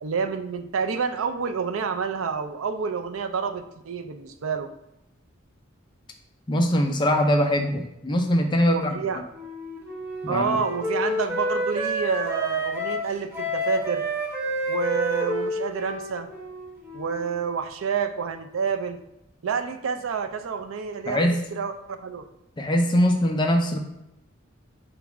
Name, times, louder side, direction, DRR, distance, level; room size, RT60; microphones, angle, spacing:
voice 1, 0.0-4.7 8.7-9.2 10.3-14.0 14.7-16.3 16.9-19.0 19.4-22.2, right 6 dB, 85° right, 8 dB, 0.4 m, -28 dB
voice 2, 6.5-8.9 10.2-10.6 21.1-21.5 22.6-23.8, equal, 25° left, 4 dB, 0.4 m, -22 dB
Wind instrument woodwind instrument, 9.3-17.3, equal, 10° right, 0.8 m, -29 dB
3.5 x 3.1 x 4.8 m, 0.85 s
head